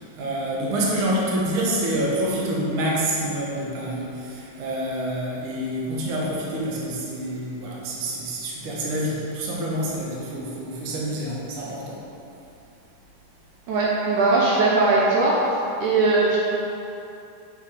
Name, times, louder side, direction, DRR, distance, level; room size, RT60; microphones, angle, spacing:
voice 1, 0.0-12.1, right 1 dB, 55° right, -5 dB, 1.6 m, -27 dB
voice 2, 13.7-15.4 15.8-16.4, right 3 dB, 70° right, -5 dB, 2.0 m, -19 dB
7.1 x 6.0 x 4.9 m, 2.8 s
omnidirectional pair, 4.1 m